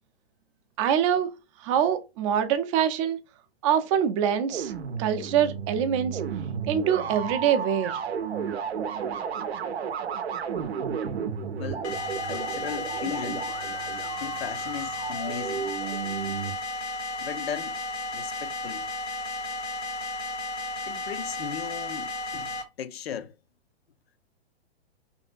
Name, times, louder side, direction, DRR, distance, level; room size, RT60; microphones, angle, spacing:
voice 1, 0.8-1.4 1.6-3.2 3.6-4.7 5.0-6.2 6.7-8.0, right 9 dB, 30° right, 0.4 m, -24 dB
sound 1, 4.5-16.5, right 7 dB, 80° right, 0.6 m, -33 dB
voice 2, 11.6-11.9 12.2-13.5 14.2-15.7 17.2-17.8 18.1-18.9 20.9-23.3, left 9 dB, 70° left, 0.5 m, -37 dB
sound 2, 11.8-22.6, left 2 dB, 90° left, 1.0 m, -33 dB
2.8 x 2.6 x 2.5 m
hypercardioid pair, 125°, 32 cm